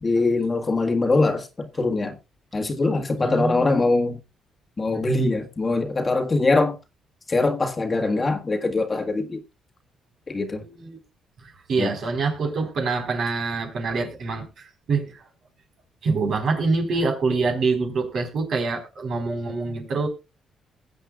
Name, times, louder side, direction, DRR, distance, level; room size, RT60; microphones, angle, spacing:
voice 1, 0.0-2.1 2.5-4.2 4.8-6.8 7.3-9.4 10.3-10.6 11.8-11.9, left 3 dB, 30° left, 1.6 m, -22 dB
voice 2, 3.2-3.8 10.6-11.0 11.7-15.2 16.0-20.1, right 4 dB, 60° right, 4.0 m, -25 dB
20.5 x 7.9 x 2.3 m
cardioid pair, 90°, 0 cm